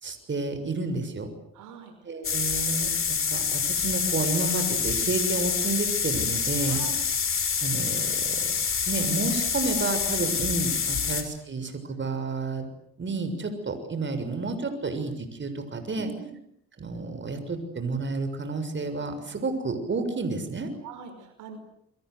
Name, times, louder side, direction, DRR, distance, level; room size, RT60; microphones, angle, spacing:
voice 1, 0.0-1.3 2.0-6.8 7.6-8.5 8.9-12.6 13.0-16.1 16.8-20.7, right 3 dB, 40° right, 8 dB, 6.6 m, -30 dB
voice 2, 1.5-1.9 6.6-7.0 11.0-11.2 16.0-16.4 20.8-21.6, right 8 dB, 90° right, 7 dB, 5.6 m, -42 dB
sound 1, 2.2-11.2, left 6 dB, 45° left, 6.2 m, -27 dB
29.5 x 24.0 x 8.1 m, 0.74 s
cardioid pair, 90°, 30 cm